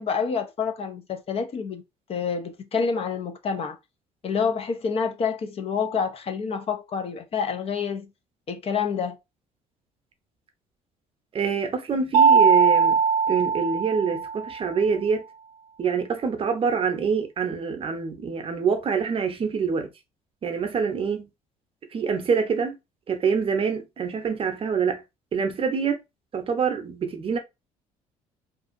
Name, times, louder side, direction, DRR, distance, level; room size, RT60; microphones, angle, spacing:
voice 1, 0.0-1.8 2.1-3.8 4.2-8.1 8.5-9.2, left 6 dB, 45° left, 0.5 m, -28 dB
voice 2, 11.3-13.0 13.3-15.2 15.8-19.9 20.4-21.3 21.9-22.8 23.1-25.0 25.3-26.0 26.3-27.4, right 6 dB, 40° right, 0.7 m, -25 dB
Mallet percussion, 12.1-14.7, right 6 dB, 85° right, 0.4 m, -20 dB
2.6 x 2.4 x 2.5 m
supercardioid pair, 80°, 14 cm